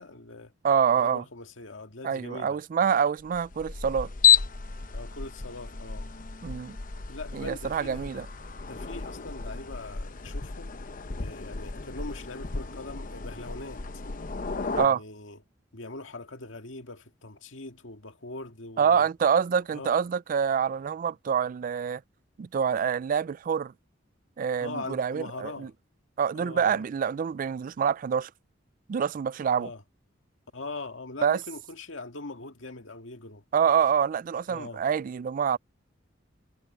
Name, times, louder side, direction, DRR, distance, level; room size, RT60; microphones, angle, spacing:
voice 1, 0.0-0.5 1.0-2.6 4.9-6.1 7.1-8.3 8.6-10.7 11.2-13.8 14.7-15.4 15.7-19.1 19.7-20.0 24.6-25.7 26.3-26.8 29.6-29.8 30.5-33.4 34.5-34.8, left 3 dB, 90° left, 1.9 m, -41 dB
voice 2, 0.6-1.2 2.0-4.1 6.4-6.8 7.3-8.3 14.8-15.0 18.8-22.0 22.4-23.7 24.4-25.7 26.2-28.3 28.9-29.7 31.2-31.4 33.5-35.6, right 7 dB, 45° right, 0.3 m, -26 dB
sound 1, 3.3-14.9, left 7 dB, 45° left, 0.8 m, -31 dB
head